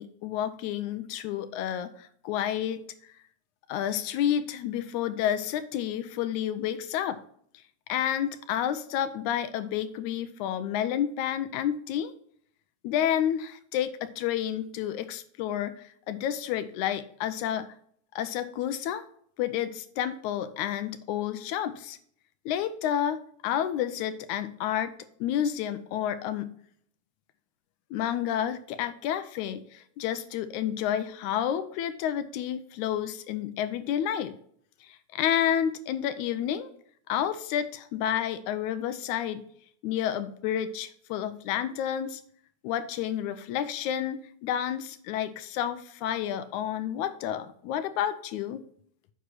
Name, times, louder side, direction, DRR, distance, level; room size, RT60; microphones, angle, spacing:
voice 1, 0.0-2.8 3.7-7.2 7.9-12.1 12.8-17.7 18.2-19.0 19.4-22.0 22.5-25.0 25.2-26.5 27.9-34.3 34.8-36.7 37.1-39.4 39.8-42.2 42.6-48.6, left 10 dB, 85° left, 11 dB, 2.0 m, -30 dB
8.1 x 6.0 x 4.6 m, 0.63 s
omnidirectional pair, 3.5 m